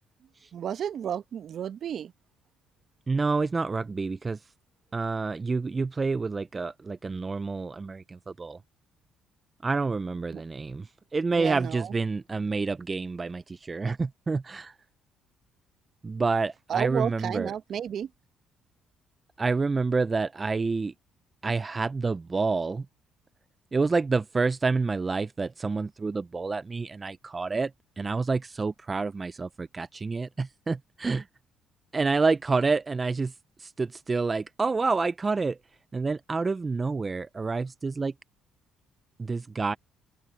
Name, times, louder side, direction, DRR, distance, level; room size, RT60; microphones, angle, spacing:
voice 1, 0.5-2.1 10.3-10.4 11.3-11.9 16.7-18.1, right 9 dB, 60° right, 1.3 m, -32 dB
voice 2, 3.1-4.5 4.9-8.6 9.6-14.8 16.0-17.5 19.4-20.9 21.4-22.9 23.7-31.3 31.9-35.6 35.9-38.1 39.2-39.8, right 4 dB, 30° right, 0.6 m, -28 dB
open air
supercardioid pair, 60°, 0 cm